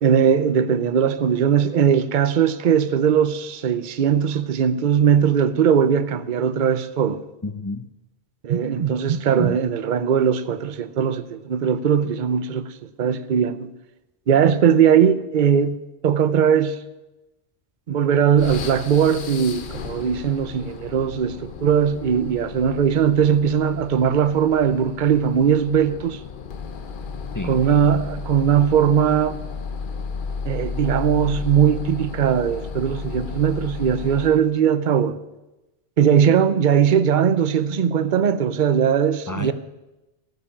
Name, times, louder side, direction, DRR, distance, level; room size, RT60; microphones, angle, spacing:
voice 1, 0.0-7.2 8.4-12.7 13.0-13.7 14.3-16.8 17.9-26.2 27.5-29.4 30.5-35.2 36.0-39.5, right 8 dB, 50° right, 0.8 m, -19 dB
voice 2, 7.4-7.9 9.4-9.6 27.3-27.7 39.3-39.5, left 2 dB, 25° left, 0.5 m, -30 dB
sound 1, 18.4-34.5, left 5 dB, 50° left, 0.9 m, -34 dB
15.0 x 7.9 x 8.8 m
omnidirectional pair, 1.2 m